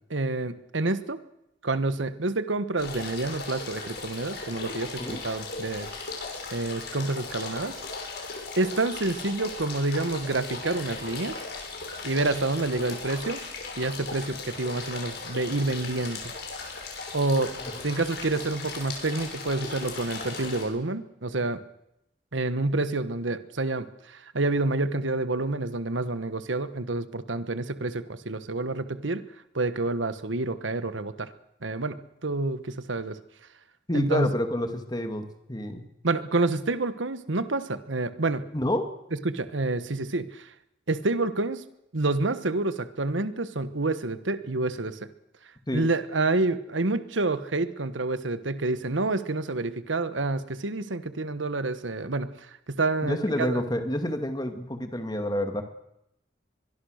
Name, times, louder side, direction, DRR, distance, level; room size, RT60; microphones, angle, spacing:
voice 1, 0.1-1.2 1.6-5.9 6.5-7.8 8.6-11.3 12.0-13.4 13.8-16.2 17.1-17.5 17.8-21.6 22.3-29.2 29.5-31.3 31.6-33.2 33.9-34.3 36.0-38.5 39.2-40.5 40.9-41.6 41.9-45.1 45.7-53.6, right 2 dB, 85° right, 12 dB, 1.3 m, -28 dB
sound 1, 2.8-20.6, left 4 dB, 60° left, 6.4 m, -37 dB
voice 2, 33.9-35.8 38.5-38.8 45.7-45.9 53.0-55.6, left 1 dB, 20° left, 7 dB, 2.2 m, -28 dB
24.0 x 22.0 x 6.6 m, 0.82 s
head